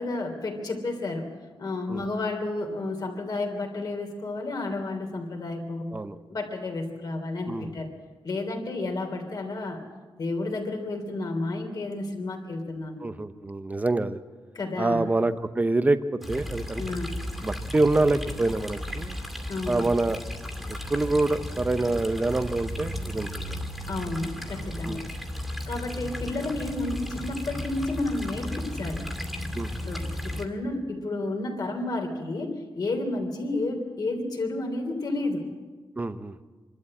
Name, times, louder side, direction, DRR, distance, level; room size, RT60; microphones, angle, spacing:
voice 1, 0.0-6.0 6.3-7.9 8.2-9.8 10.2-13.1 14.5-15.0 16.8-17.2 19.5-19.8 23.9-25.0 25.7-29.1 29.8-35.5, left 2 dB, 45° left, 3 dB, 3.3 m, -31 dB
voice 2, 13.0-14.2 14.8-17.0 17.4-19.2 19.7-20.2 20.7-23.6 24.9-25.0 29.5-29.7 36.0-36.4, right 2 dB, 15° right, 11 dB, 0.8 m, -26 dB
sound 1, 16.2-30.4, left 1 dB, ahead, 2.4 m, -35 dB
26.0 x 12.5 x 8.8 m, 1.4 s
wide cardioid pair, 160°, 9 cm